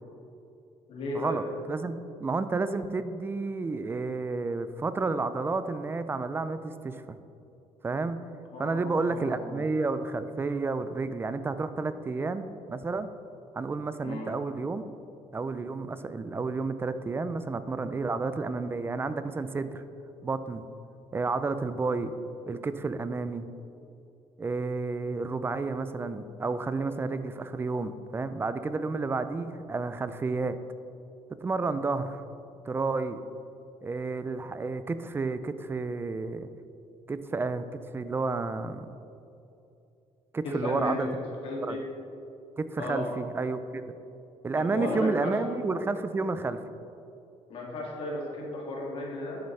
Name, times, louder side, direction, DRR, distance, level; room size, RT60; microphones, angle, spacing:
voice 1, 0.9-1.4 8.5-9.6 14.0-14.4 40.4-41.1 41.4-41.8 42.8-43.1 44.5-45.6 47.5-49.4, left 1 dB, 60° left, -3 dB, 2.3 m, -34 dB
voice 2, 1.7-7.2 7.8-8.2 8.6-13.1 13.5-14.8 15.3-19.8 20.2-20.7 21.1-22.1 22.5-23.5 24.4-30.6 31.4-32.2 32.7-33.2 33.8-36.5 37.1-37.7 37.9-38.9 40.3-41.1 41.6-41.8 42.6-43.9 44.4-46.6, right 3 dB, 20° right, 12 dB, 0.4 m, -31 dB
10.5 x 8.3 x 3.3 m, 2.8 s
cardioid pair, 120°, 11 cm